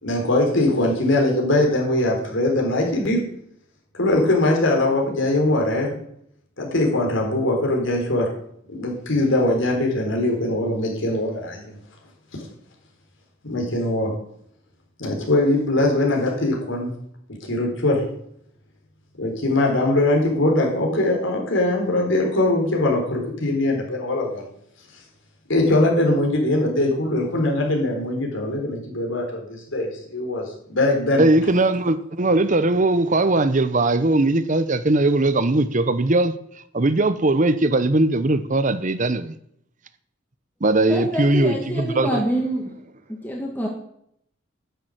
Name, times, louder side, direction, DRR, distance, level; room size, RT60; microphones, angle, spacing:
voice 1, 0.0-3.2 3.9-5.9 6.6-8.3 8.7-11.8 13.4-14.1 15.0-16.9 17.5-18.0 19.2-24.5 25.5-31.2, left 1 dB, 70° left, 4.2 m, -21 dB
voice 2, 31.2-36.3 36.7-39.4 40.6-42.2, right 2 dB, 40° right, 0.8 m, -19 dB
voice 3, 40.9-42.8 43.1-43.7, right 1 dB, 10° left, 1.7 m, -26 dB
11.0 x 7.0 x 9.3 m
head